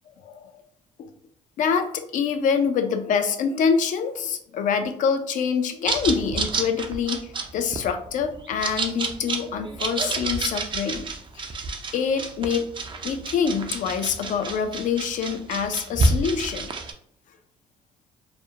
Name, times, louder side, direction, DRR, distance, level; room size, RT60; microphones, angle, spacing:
voice 1, 0.2-0.6 1.0-1.1 1.6-11.1 11.3-11.5 11.9-12.7 13.0-16.7, left 6 dB, 60° left, 7 dB, 0.4 m, -25 dB
sound 1, 5.9-16.9, right 3 dB, 35° right, 0.4 m, -29 dB
2.4 x 2.1 x 2.7 m, 0.67 s
supercardioid pair, 70°, 15 cm